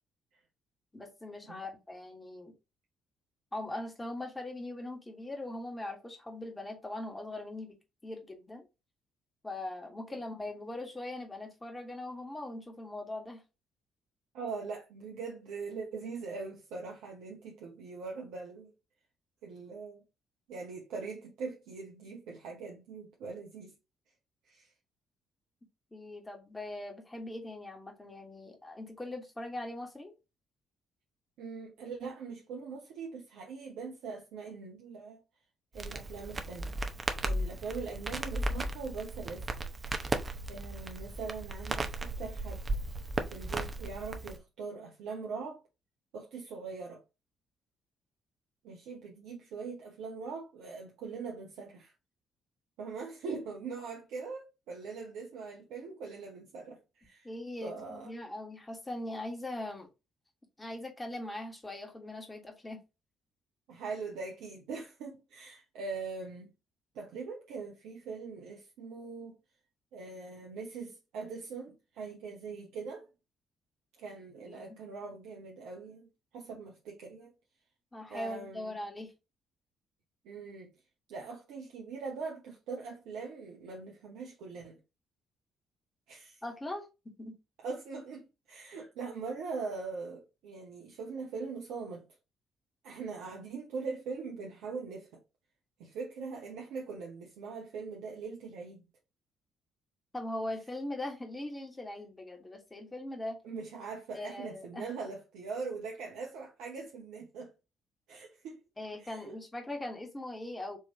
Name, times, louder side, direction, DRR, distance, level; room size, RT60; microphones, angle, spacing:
voice 1, 0.9-2.5 3.5-7.8 8.0-8.7 9.4-13.4 25.9-30.1 57.2-59.9 60.6-62.8 74.5-74.8 77.9-79.1 86.4-87.4 100.1-103.4 104.1-104.9 108.8-110.8, left 1 dB, 20° left, 1.7 m, -41 dB
voice 2, 14.3-18.7 19.4-20.0 20.5-23.7 24.5-24.7 31.4-35.2 35.7-36.8 37.2-39.5 40.5-42.6 43.3-45.6 46.1-47.0 48.6-51.9 52.8-57.3 57.6-58.1 63.7-66.5 66.9-69.4 69.9-73.0 74.0-76.1 76.3-77.3 78.1-78.8 80.2-80.7 81.1-84.8 86.1-86.4 87.6-92.0 92.8-95.2 95.8-98.9 103.4-107.5 108.1-108.6 109.0-109.4, right 4 dB, 70° right, 0.8 m, -42 dB
Crackle, 35.7-44.4, right 2 dB, 35° right, 0.8 m, -36 dB
4.7 x 2.9 x 2.9 m
figure-of-eight pair, 45°, 0 cm